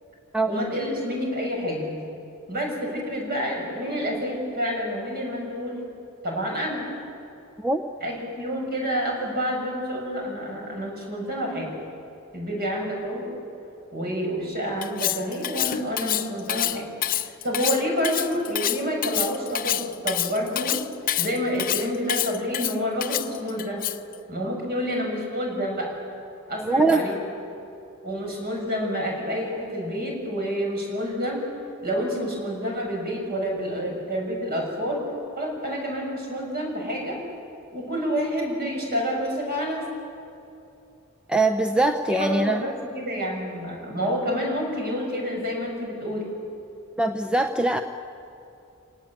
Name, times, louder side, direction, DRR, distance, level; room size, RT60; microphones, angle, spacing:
voice 1, 0.5-2.0 2.5-5.8 6.2-6.9 8.0-11.7 12.3-13.3 13.9-16.9 17.2-20.8 21.2-23.9 24.3-25.9 26.5-27.1 28.0-31.4 31.8-35.0 35.4-37.2 37.7-39.9 42.1-46.3, equal, 45° right, -1 dB, 7.3 m, -28 dB
Cutlery silverware, 14.8-24.1, left 12 dB, 40° left, 0.7 m, -27 dB
voice 2, 26.7-27.1 41.3-42.6 47.0-47.8, right 2 dB, 5° right, 5 dB, 0.7 m, -22 dB
28.0 x 18.5 x 9.0 m, 2.8 s
head